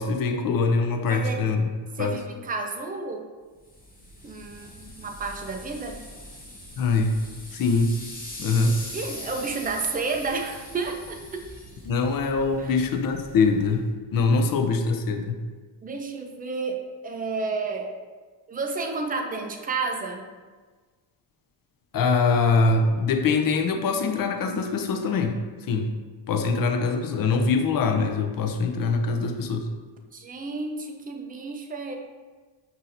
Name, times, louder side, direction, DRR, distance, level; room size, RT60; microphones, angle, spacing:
voice 1, 0.0-1.7 2.0-2.2 6.8-7.2 7.5-7.9 8.4-8.8 11.9-13.9 14.1-15.4 21.9-25.4 25.7-25.9 26.3-29.7, left 4 dB, 45° left, 5 dB, 0.5 m, -23 dB
voice 2, 1.1-1.4 2.0-3.2 4.2-6.0 8.9-11.5 12.6-12.7 14.6-14.7 15.8-18.0 18.5-20.3 30.1-32.0, right 4 dB, 20° right, 4 dB, 0.4 m, -31 dB
sound 1, 3.6-13.9, left 1 dB, 20° left, 0.9 m, -42 dB
5.6 x 2.7 x 2.6 m, 1.4 s
cardioid pair, 90°, 48 cm